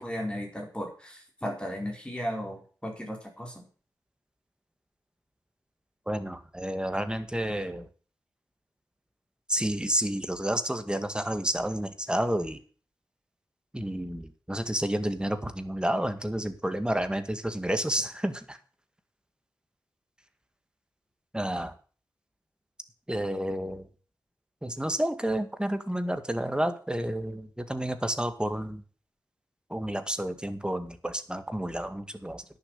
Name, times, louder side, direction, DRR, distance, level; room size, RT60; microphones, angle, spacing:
voice 1, 0.0-3.6, equal, 15° left, 1 dB, 4.6 m, -35 dB
voice 2, 6.1-7.9 9.5-12.6 13.7-18.6 21.3-21.7 23.1-23.9 24.6-28.8 29.7-32.4, right 1 dB, 10° right, 9 dB, 1.9 m, -30 dB
11.0 x 7.1 x 8.4 m, 0.40 s
cardioid pair, 45°, 7 cm